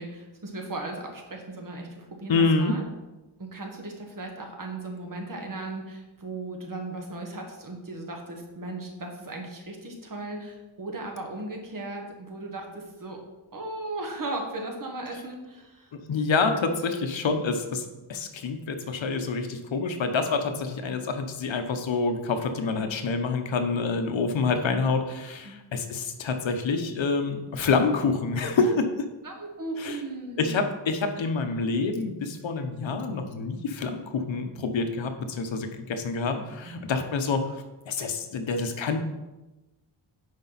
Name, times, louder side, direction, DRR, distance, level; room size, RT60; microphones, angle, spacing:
voice 1, 0.0-2.8 3.4-13.2 13.5-15.9 22.7-23.0 25.4-25.6 28.6-28.8 29.2-30.6 36.4-36.8, right 2 dB, 45° right, 1 dB, 1.7 m, -37 dB
voice 2, 2.3-2.7 15.1-15.2 16.1-28.9 29.8-30.0 30.4-39.0, left 4 dB, 70° left, 6 dB, 1.0 m, -27 dB
10.0 x 5.2 x 4.1 m, 1.1 s
wide cardioid pair, 120°, 47 cm